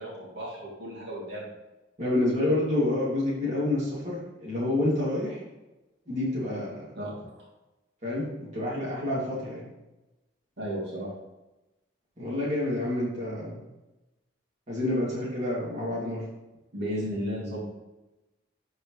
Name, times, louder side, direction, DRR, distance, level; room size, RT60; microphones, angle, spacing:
voice 1, 0.0-1.5 6.9-7.1 10.6-11.1 16.7-17.7, equal, 60° right, -6 dB, 3.1 m, -34 dB
voice 2, 2.0-5.4 6.1-6.9 8.0-8.3 8.5-9.7 12.2-13.6 14.7-16.2, left 1 dB, 35° right, -8 dB, 3.0 m, -28 dB
12.5 x 4.8 x 3.4 m, 1.0 s
head